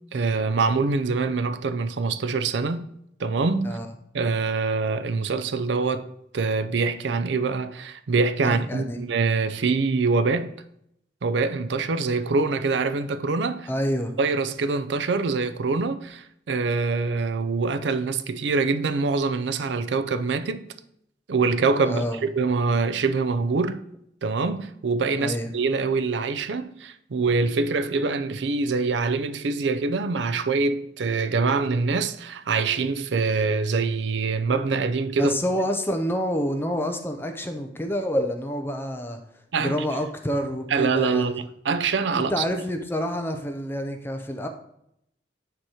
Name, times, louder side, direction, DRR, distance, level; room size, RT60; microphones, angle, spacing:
voice 1, 0.1-2.8 3.2-3.8 4.1-6.1 6.3-10.5 11.2-13.7 14.2-20.7 21.3-23.8 24.2-35.4 39.5-39.8 40.7-42.4, right 4 dB, 75° right, 0.5 m, -24 dB
voice 2, 8.4-9.0 13.7-14.1 21.9-22.2 25.2-25.5 35.2-39.2 39.6-41.4 42.2-44.5, equal, 10° left, 0.5 m, -28 dB
8.9 x 3.0 x 4.8 m
head